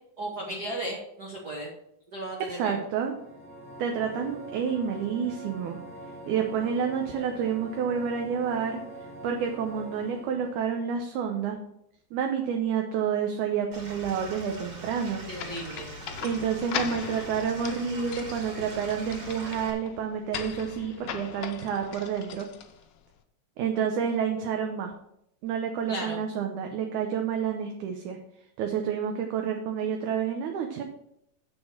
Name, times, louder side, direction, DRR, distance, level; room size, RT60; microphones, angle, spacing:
voice 1, 0.2-1.7 2.1-2.8 15.3-15.9 25.9-26.2, right 1 dB, 55° right, -2 dB, 1.1 m, -35 dB
voice 2, 2.6-3.2 3.8-5.8 6.3-8.8 9.2-11.6 12.1-15.2 16.2-22.5 23.6-24.9 25.4-28.2 28.6-30.8, right 7 dB, 75° right, 3 dB, 2.2 m, -29 dB
sound 1, 3.0-10.8, right 1 dB, 5° right, 2.5 m, -44 dB
Stream / Liquid, 13.7-19.7, right 1 dB, 30° right, 2.6 m, -42 dB
sound 2, 15.4-23.0, left 8 dB, 80° left, 1.3 m, -39 dB
6.9 x 6.3 x 7.3 m, 0.78 s
omnidirectional pair, 3.7 m